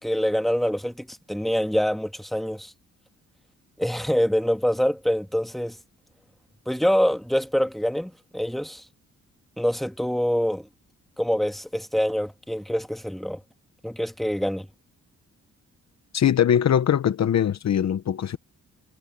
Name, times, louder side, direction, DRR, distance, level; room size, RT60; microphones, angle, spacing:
voice 1, 0.0-2.7 3.8-5.8 6.7-8.8 9.6-10.7 11.2-13.4 13.8-14.7, equal, ahead, 2.0 m, -25 dB
voice 2, 16.1-18.4, left 9 dB, 60° left, 1.0 m, -21 dB
cardioid pair, 90°, 31 cm